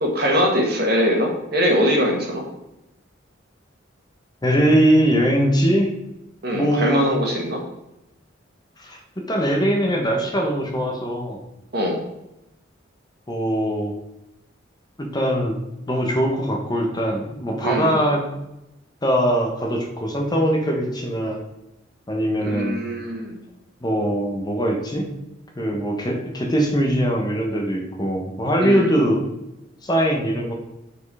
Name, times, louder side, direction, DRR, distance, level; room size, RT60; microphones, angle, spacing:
voice 1, 0.0-2.4 6.4-7.6 11.7-12.0 17.6-18.1 22.4-23.3 28.6-28.9, equal, 55° right, 0 dB, 1.5 m, -22 dB
voice 2, 4.4-5.9 6.5-7.1 8.8-11.4 13.3-14.0 15.0-15.6 15.9-18.2 19.0-21.4 22.1-22.8 23.8-25.1 25.6-29.2 29.8-30.5, equal, 20° left, 1 dB, 1.0 m, -21 dB
5.3 x 4.6 x 4.8 m, 0.89 s
head